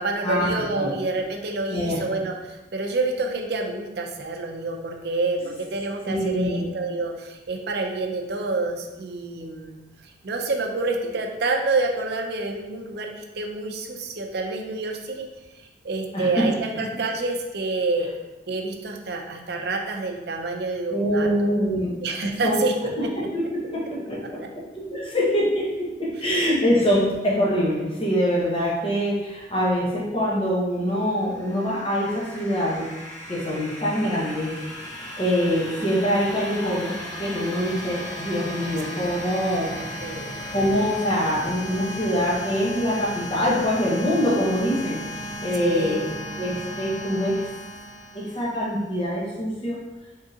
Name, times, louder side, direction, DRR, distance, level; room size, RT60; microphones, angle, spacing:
voice 1, 0.0-15.3 15.6-18.1 18.5-21.5 22.0-22.7 24.4-24.5 26.2-26.4 36.3-36.4 40.0-40.4 45.6-46.1, right 3 dB, 65° right, 2 dB, 0.5 m, -28 dB
voice 2, 1.7-2.0 6.1-6.6 16.1-16.4 20.9-21.9 22.4-22.6 23.0-23.1 23.5-24.4 24.9-32.9 33.3-34.5 35.2-36.9 37.2-39.7 40.5-46.0 46.4-47.4 48.1-49.8, equal, 30° left, -5 dB, 1.0 m, -24 dB
sound 1, 31.1-48.7, equal, 15° left, 1.4 m, -36 dB
3.7 x 3.6 x 2.7 m, 1.1 s
head